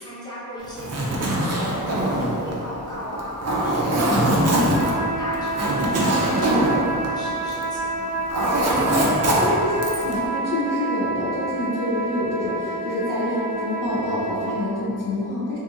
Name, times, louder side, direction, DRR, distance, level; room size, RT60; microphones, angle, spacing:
voice 1, 0.0-8.2, equal, 10° left, -10 dB, 0.8 m, -37 dB
Zipper (clothing), 0.6-7.8 8.0-10.2, right 1 dB, 40° right, 0.5 m, -22 dB
voice 2, 4.1-4.6 8.7-15.6, left 1 dB, 55° left, -7 dB, 0.6 m, -27 dB
sound 1, 4.4-14.6, right 3 dB, 40° left, 1.1 m, -29 dB
2.7 x 2.6 x 2.4 m, 2.8 s
wide cardioid pair, 85°, 38 cm